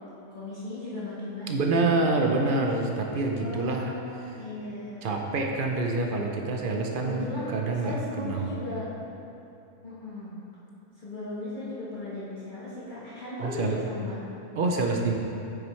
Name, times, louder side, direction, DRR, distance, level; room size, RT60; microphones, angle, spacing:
voice 1, 0.3-2.0 3.3-5.0 7.0-8.9 9.8-10.3 11.0-14.2, left 1 dB, 35° left, -11 dB, 1.4 m, -37 dB
voice 2, 1.5-4.0 5.0-7.3 7.5-8.6 13.4-13.8 14.6-15.1, right 3 dB, 65° right, 2 dB, 0.5 m, -26 dB
8.8 x 6.0 x 3.2 m, 2.9 s
omnidirectional pair, 1.5 m